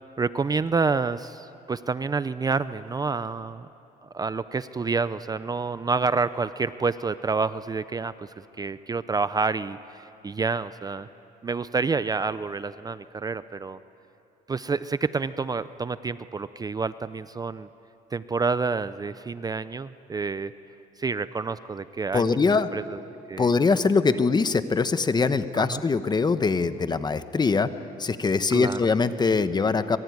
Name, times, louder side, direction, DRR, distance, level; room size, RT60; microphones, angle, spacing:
voice 1, 0.2-3.7 4.0-11.1 11.4-13.8 14.5-17.7 18.1-20.5 21.0-22.4 22.7-23.0 23.3-23.5 25.6-25.8 28.5-28.9, right 4 dB, 20° right, 14 dB, 0.6 m, -28 dB
voice 2, 22.1-22.7 23.4-27.7 28.0-30.0, left 4 dB, 25° left, 11 dB, 1.1 m, -22 dB
25.5 x 23.0 x 9.6 m, 2.9 s
cardioid pair, 110°, 17 cm